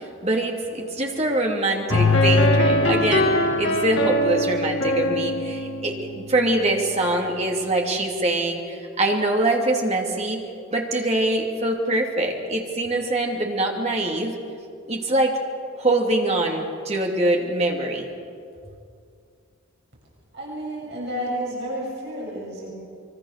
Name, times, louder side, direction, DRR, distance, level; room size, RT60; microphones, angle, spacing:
voice 1, 0.0-10.4 10.7-14.4 14.9-15.4 15.8-18.1, right 2 dB, 30° right, 0 dB, 2.8 m, -24 dB
sound 1, 1.9-6.8, left 1 dB, 60° left, 2.3 m, -21 dB
voice 2, 20.3-22.7, equal, 55° right, -4 dB, 7.3 m, -31 dB
25.0 x 23.5 x 6.7 m, 2.4 s
head